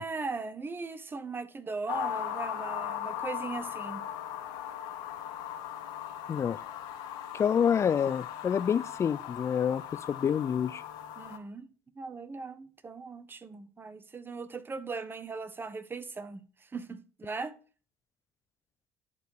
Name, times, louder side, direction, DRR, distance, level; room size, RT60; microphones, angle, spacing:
voice 1, 0.0-4.0 11.2-11.7 11.9-17.5, right 4 dB, 30° right, 1.2 m, -39 dB
sound 1, 1.9-11.4, left 10 dB, 70° left, 1.2 m, -38 dB
voice 2, 7.3-10.8, left 8 dB, 35° left, 0.4 m, -27 dB
11.0 x 4.5 x 6.6 m
hypercardioid pair, 65°, 8 cm